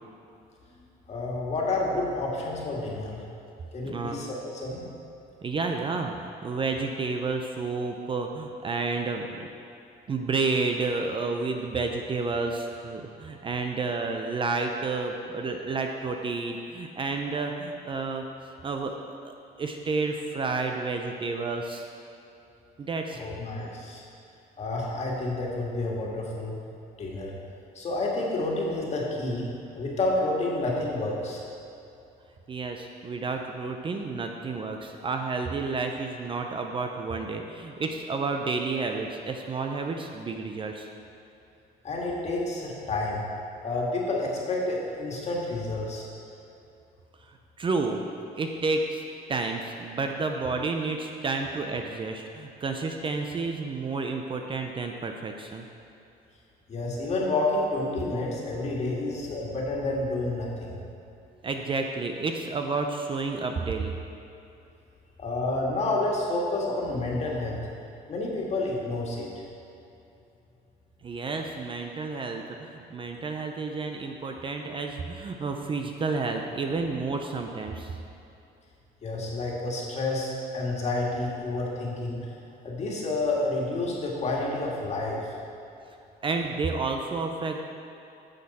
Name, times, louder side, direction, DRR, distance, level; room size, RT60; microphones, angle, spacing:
voice 1, 1.1-3.2 3.7-4.3 4.5-4.8 23.1-24.0 24.6-26.5 27.0-27.3 27.7-29.5 29.7-31.4 41.8-43.2 43.6-46.0 56.7-60.8 65.2-67.6 68.1-69.3 79.0-82.3 82.6-85.3, left 2 dB, 40° left, -3 dB, 1.9 m, -29 dB
voice 2, 3.8-4.2 5.4-6.1 6.4-9.5 10.1-18.2 18.6-19.0 19.2-21.9 22.8-23.2 32.5-40.9 47.2-48.0 48.4-49.0 49.3-55.7 61.4-63.9 71.0-78.0 86.2-87.6, right 3 dB, 30° right, 4 dB, 0.6 m, -30 dB
9.8 x 6.4 x 4.2 m, 2.7 s
cardioid pair, 110°, 17 cm